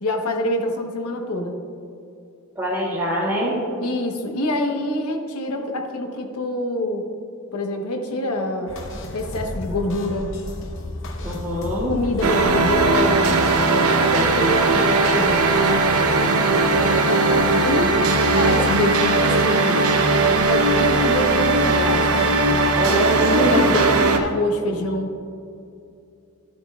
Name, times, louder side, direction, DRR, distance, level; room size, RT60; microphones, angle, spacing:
voice 1, 0.0-1.6 3.8-7.0 7.5-8.8 9.1-10.3 11.9-13.4 13.7-15.9 16.7-18.0 18.3-19.8 20.4-22.1 23.2-25.2, left 1 dB, 85° left, 3 dB, 1.1 m, -26 dB
voice 2, 2.5-3.6 11.2-11.9 22.7-23.6, equal, 15° right, -11 dB, 1.7 m, -23 dB
sound 1, 8.7-13.7, left 1 dB, 55° left, 0.8 m, -33 dB
sound 2, 12.2-24.2, right 3 dB, 75° right, 0.8 m, -18 dB
13.0 x 8.2 x 2.4 m, 2.6 s
head